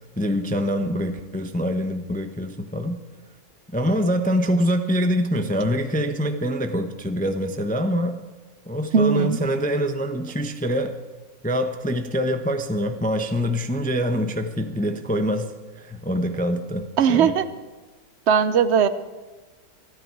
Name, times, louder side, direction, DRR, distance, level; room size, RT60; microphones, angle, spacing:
voice 1, 0.2-3.0 3.7-8.2 8.7-11.0 11.4-17.3, equal, 10° left, 6 dB, 0.4 m, -25 dB
voice 2, 8.9-9.4 17.0-17.4 18.3-18.9, right 7 dB, 55° right, 12 dB, 0.8 m, -18 dB
28.0 x 9.9 x 4.7 m, 1.2 s
omnidirectional pair, 1.8 m